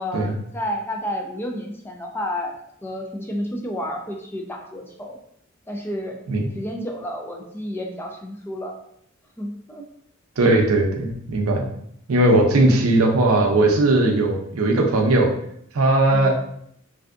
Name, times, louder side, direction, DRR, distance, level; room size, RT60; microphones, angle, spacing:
voice 1, 0.0-2.5 2.8-5.2 5.7-6.2 6.5-8.7 9.4-9.9 12.6-12.8 16.1-16.4, equal, 10° left, 1 dB, 0.3 m, -31 dB
voice 2, 10.4-11.6 12.1-15.3 15.7-16.4, right 2 dB, 90° right, 2 dB, 0.6 m, -18 dB
3.3 x 2.6 x 2.5 m, 0.71 s
head